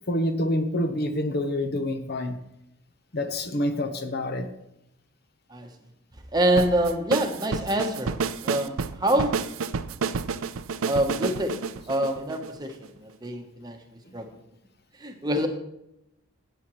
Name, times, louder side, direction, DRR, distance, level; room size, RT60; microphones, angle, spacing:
voice 1, 0.1-2.4 3.1-4.5, left 1 dB, 50° left, 7 dB, 0.9 m, -27 dB
voice 2, 6.3-8.1 8.4-9.4 10.8-11.6 11.9-14.3 15.0-15.5, right 1 dB, 20° right, 4 dB, 1.0 m, -26 dB
sound 1, 6.6-12.9, right 5 dB, 80° right, 0.5 m, -30 dB
15.0 x 8.7 x 3.1 m, 0.85 s
head